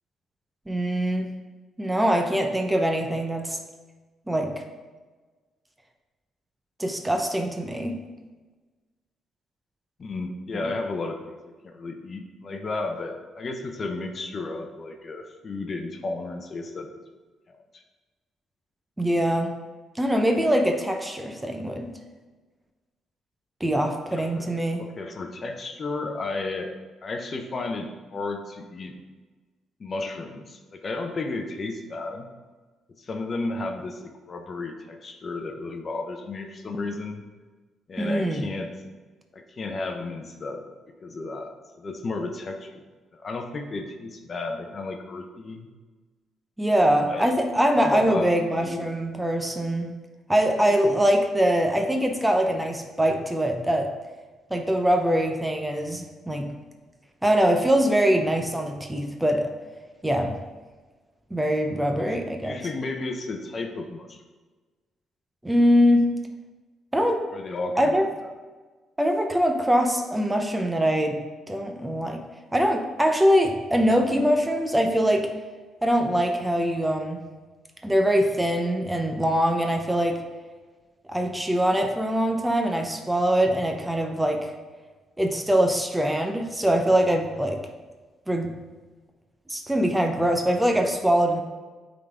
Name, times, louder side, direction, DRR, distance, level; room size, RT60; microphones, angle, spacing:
voice 1, 0.7-1.3 1.8-3.6 4.3-4.6 6.8-8.0 10.6-10.7 19.0-19.5 19.9-21.9 23.6-24.8 38.0-38.5 46.6-49.9 50.3-53.9 54.5-56.5 57.2-59.5 60.0-60.4 61.3-62.6 65.4-66.2 66.9-67.3 67.8-68.0 69.0-71.2 71.5-72.2 72.5-75.3 75.8-77.2 77.8-80.2 81.1-84.5 85.2-87.6 88.3-88.5 89.5-91.4, equal, 10° right, 4 dB, 0.7 m, -23 dB
voice 2, 10.0-11.3 11.6-16.9 17.5-17.8 24.1-24.5 24.8-26.7 27.0-29.0 29.8-32.3 33.0-37.2 37.9-38.7 39.3-40.6 41.0-41.5 41.8-42.8 43.1-45.7 47.1-47.3 47.8-48.9 62.0-64.2 67.3-68.1, left 3 dB, 40° left, 4 dB, 0.8 m, -33 dB
8.4 x 3.9 x 3.4 m, 1.3 s
cardioid pair, 90°, 0 cm